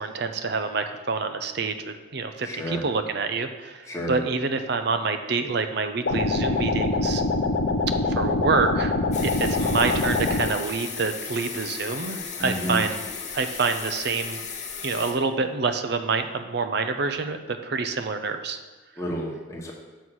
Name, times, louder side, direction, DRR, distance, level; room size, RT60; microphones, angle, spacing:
voice 1, 0.0-7.2 8.1-8.9 9.2-13.0 13.3-14.4 14.8-18.6, right 4 dB, 55° right, 8 dB, 0.5 m, -27 dB
voice 2, 2.4-2.8 3.9-4.2 12.4-12.8 19.0-19.7, equal, 15° left, -2 dB, 1.1 m, -31 dB
sound 1, 6.1-10.5, left 3 dB, 65° left, 0.6 m, -24 dB
sound 2, 9.1-15.1, left 6 dB, 35° left, 0.8 m, -35 dB
6.3 x 5.5 x 6.2 m, 1.2 s
head